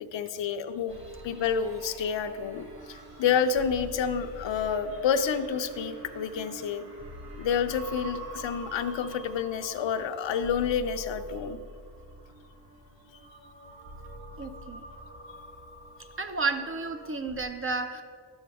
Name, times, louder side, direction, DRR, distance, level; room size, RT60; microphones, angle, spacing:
voice 1, 0.0-6.8 7.4-11.6, left 7 dB, 75° left, 9 dB, 0.6 m, -29 dB
sound 1, 0.9-17.4, right 1 dB, 55° right, 1.5 m, -46 dB
voice 2, 14.0-14.8 15.1-15.4 16.0-18.0, right 4 dB, 30° right, 8 dB, 0.4 m, -33 dB
11.0 x 7.1 x 3.5 m, 2.1 s
wide cardioid pair, 160°, 44 cm